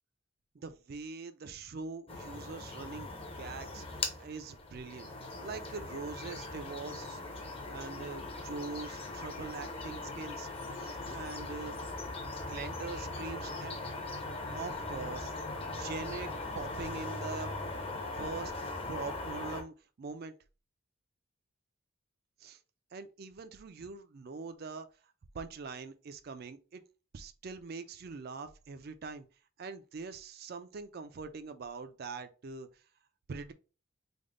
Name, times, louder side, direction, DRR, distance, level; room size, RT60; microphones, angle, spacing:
voice 1, 0.5-5.1 5.4-7.2 7.7-10.5 10.8-11.8 12.5-13.8 14.5-15.3 15.8-16.3 16.5-17.5 18.1-18.5 18.9-20.4 22.4-22.6 22.9-24.9 25.3-26.8 27.1-29.3 29.6-32.7 33.3-33.5, right 4 dB, 50° right, 0.4 m, -43 dB
sound 1, 2.1-19.6, left 2 dB, 30° left, 0.6 m, -40 dB
3.5 x 2.1 x 3.7 m
head